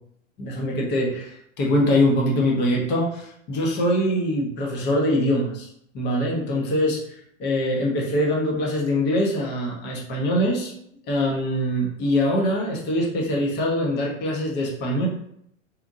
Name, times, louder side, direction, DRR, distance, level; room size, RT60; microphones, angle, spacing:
voice 1, 0.4-5.7 5.9-7.0 7.4-10.7 11.1-15.1, left 1 dB, 25° left, -2 dB, 0.9 m, -23 dB
4.3 x 2.7 x 2.6 m, 0.71 s
hypercardioid pair, 125°, 39 cm